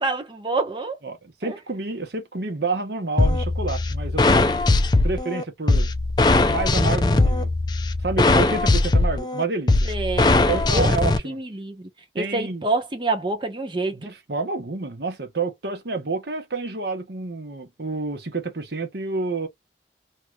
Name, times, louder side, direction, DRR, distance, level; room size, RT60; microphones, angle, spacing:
voice 1, 0.0-1.0 1.4-1.6 9.9-10.4 10.7-10.9 11.2-11.9 12.1-14.1, right 3 dB, 25° right, 0.9 m, -27 dB
voice 2, 1.0-4.4 5.0-5.9 6.4-7.5 8.0-9.9 10.5-11.4 12.2-12.7 13.9-19.5, right 3 dB, 65° right, 1.0 m, -29 dB
sound 1, 3.2-11.2, left 2 dB, 25° left, 0.4 m, -20 dB
3.1 x 3.0 x 2.3 m
head